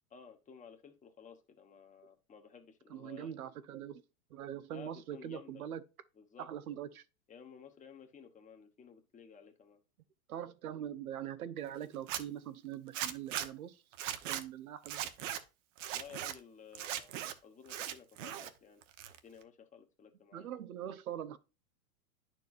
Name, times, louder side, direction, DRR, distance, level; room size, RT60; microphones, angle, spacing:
voice 1, 0.1-3.4 4.7-5.7 6.2-6.5 7.3-9.8 15.9-18.8 19.2-20.5, left 7 dB, 20° left, 1.2 m, -54 dB
voice 2, 2.9-4.0 4.3-5.8 6.4-7.0 10.3-13.8 14.2-15.0 20.3-21.4, right 10 dB, 85° right, 0.9 m, -42 dB
Zipper (clothing), 11.9-12.2 12.9-13.5 13.9-14.4 14.9-15.4 15.8-16.3 16.8-17.3 17.7-18.5 18.8-19.4, right 11 dB, 60° right, 1.0 m, -38 dB
10.5 x 4.6 x 2.5 m
hypercardioid pair, 120°, 42 cm